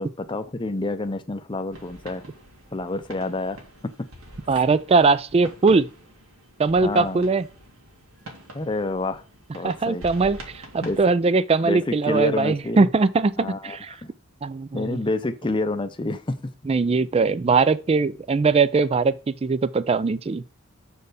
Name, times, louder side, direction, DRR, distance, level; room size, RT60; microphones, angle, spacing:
voice 1, 0.0-2.2 2.7-3.6 3.8-4.1 6.8-7.2 8.5-9.2 9.5-10.0 10.8-11.0 11.6-12.9 13.4-14.1 14.7-16.5, left 2 dB, 25° left, 0.6 m, -28 dB
sound 1, 1.7-11.1, right 1 dB, 85° right, 2.1 m, -45 dB
voice 2, 4.5-5.9 6.6-7.4 9.6-13.9 14.4-15.0 16.7-20.4, right 4 dB, 30° right, 0.4 m, -21 dB
6.7 x 4.6 x 4.8 m
head